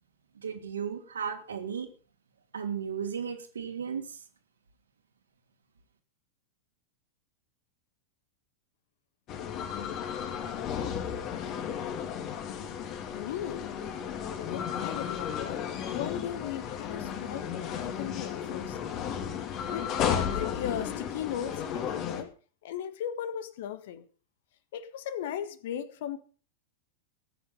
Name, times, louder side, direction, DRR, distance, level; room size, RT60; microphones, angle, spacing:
voice 1, 0.3-1.9 2.5-4.2, right 7 dB, 70° right, 2.9 m, -35 dB
sound 1, 9.3-22.2, left 8 dB, 35° left, 2.9 m, -34 dB
voice 2, 13.1-13.7 14.4-15.6 15.9-18.8 19.7-22.3 22.6-24.0 24.7-26.2, left 10 dB, 55° left, 1.4 m, -37 dB
18.5 x 9.8 x 5.5 m
figure-of-eight pair, 90°, 0 cm